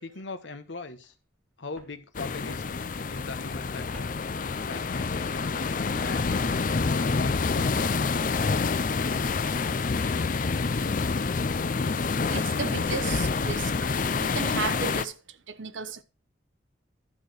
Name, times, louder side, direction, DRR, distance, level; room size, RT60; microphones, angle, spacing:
voice 1, 0.0-1.1 1.6-2.6 3.1-4.1 4.6-6.6 6.9-8.2, left 3 dB, 80° left, 1.2 m, -40 dB
Walk footsteps, 1.0-1.1 1.7-3.2 3.5-5.8 6.2-10.2 10.5-10.6, equal, ahead, 2.4 m, -54 dB
sound 1, 2.1-15.1, left 4 dB, 45° left, 0.5 m, -27 dB
voice 2, 12.3-13.9 14.2-16.0, right 6 dB, 85° right, 0.8 m, -34 dB
12.0 x 4.4 x 6.4 m
head